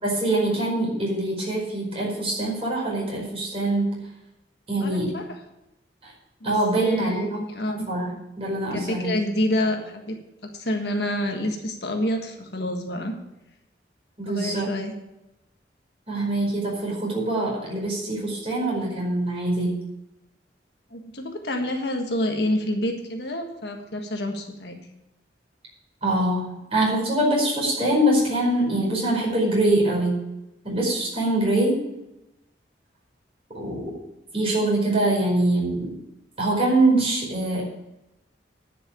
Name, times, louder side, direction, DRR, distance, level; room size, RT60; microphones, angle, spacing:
voice 1, 0.0-4.0 4.7-5.2 6.0-6.1 6.4-7.4 7.7-9.1 14.2-14.8 16.1-19.8 26.0-30.2 30.6-31.8 33.5-33.8 34.3-35.9 36.4-37.6, right 1 dB, 35° right, -3 dB, 5.1 m, -24 dB
voice 2, 4.8-5.3 6.4-7.9 8.7-13.1 14.3-14.9 20.9-24.8, left 1 dB, 65° left, 3 dB, 1.5 m, -28 dB
10.5 x 6.2 x 8.6 m, 0.92 s
head